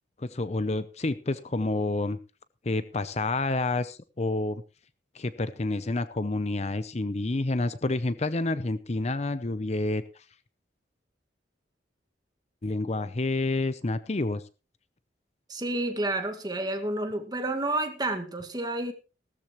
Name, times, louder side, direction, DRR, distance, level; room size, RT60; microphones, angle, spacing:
voice 1, 0.2-2.2 2.6-4.6 5.1-10.0 12.6-14.4, left 2 dB, 35° left, 0.7 m, -29 dB
voice 2, 15.5-18.9, right 2 dB, 20° right, 1.9 m, -30 dB
17.5 x 13.5 x 3.1 m
head